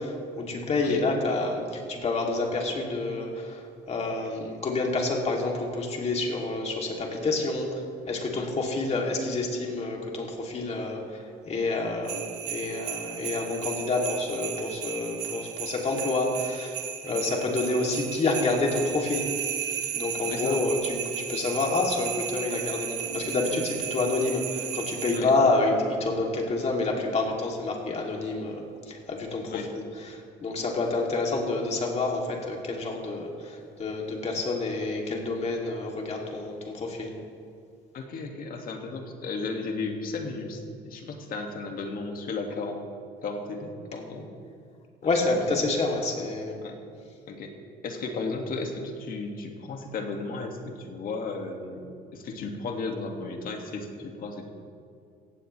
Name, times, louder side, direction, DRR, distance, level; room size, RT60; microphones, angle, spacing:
voice 1, 0.0-16.7 17.0-19.3 19.9-21.0 21.3-29.6 30.0-37.1 45.0-46.6, left 2 dB, 40° left, -1 dB, 2.9 m, -28 dB
sound 1, 12.0-25.2, right 9 dB, 85° right, 1.3 m, -35 dB
voice 2, 20.3-20.6 25.1-25.3 29.5-29.7 37.9-42.8 43.2-44.3 45.3-45.5 46.6-46.8 47.3-47.6 47.8-54.5, left 3 dB, 60° left, 2 dB, 2.1 m, -34 dB
16.5 x 16.5 x 3.3 m, 2.4 s
cardioid pair, 110°, 17 cm